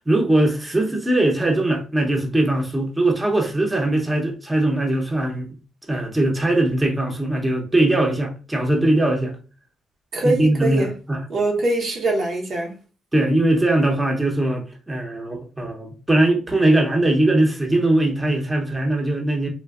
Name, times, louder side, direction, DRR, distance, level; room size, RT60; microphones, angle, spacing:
voice 1, 0.1-5.5 5.9-9.4 10.2-11.2 13.1-19.5, right 1 dB, 15° right, 0.7 m, -20 dB
voice 2, 10.1-10.9 11.3-12.8, right 2 dB, 55° right, 0.6 m, -23 dB
3.3 x 2.1 x 2.3 m
cardioid pair, 90°, 0 cm